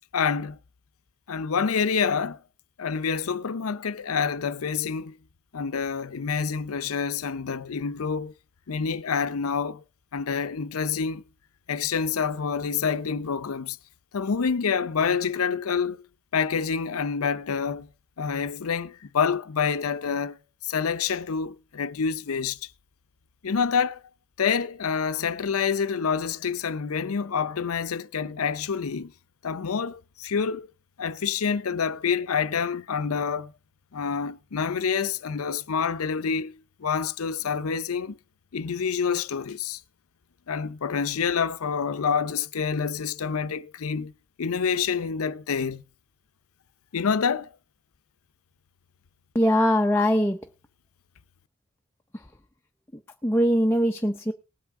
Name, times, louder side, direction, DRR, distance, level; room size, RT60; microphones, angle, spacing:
voice 1, 0.1-0.6 1.3-2.4 2.8-5.2 5.5-8.3 8.7-9.8 10.1-11.2 11.7-13.8 14.1-16.0 16.3-17.9 18.2-20.4 20.6-22.7 23.4-24.0 24.4-29.1 29.4-30.7 31.0-33.5 33.9-38.2 38.5-39.8 40.5-44.1 44.4-45.8 46.9-47.5, left 6 dB, 90° left, 0.6 m, -27 dB
voice 2, 49.3-50.4 53.2-54.3, equal, 10° left, 0.5 m, -21 dB
19.0 x 8.2 x 3.6 m
head